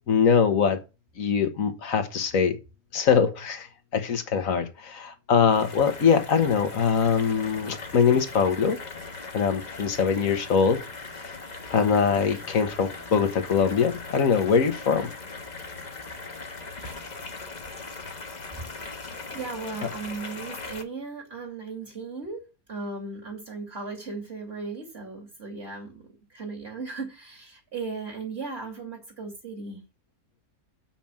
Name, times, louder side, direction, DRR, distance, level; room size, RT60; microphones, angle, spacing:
voice 1, 0.1-0.8 1.2-2.6 2.9-8.8 9.3-10.8 11.2-11.3 11.7-15.1, left 6 dB, 65° left, 1.7 m, -23 dB
sound 1, 5.5-20.8, left 3 dB, 30° left, 1.2 m, -40 dB
voice 2, 18.8-22.4 22.7-26.0 26.3-29.8, right 4 dB, 45° right, 3.1 m, -37 dB
7.1 x 6.0 x 7.3 m
omnidirectional pair, 1.5 m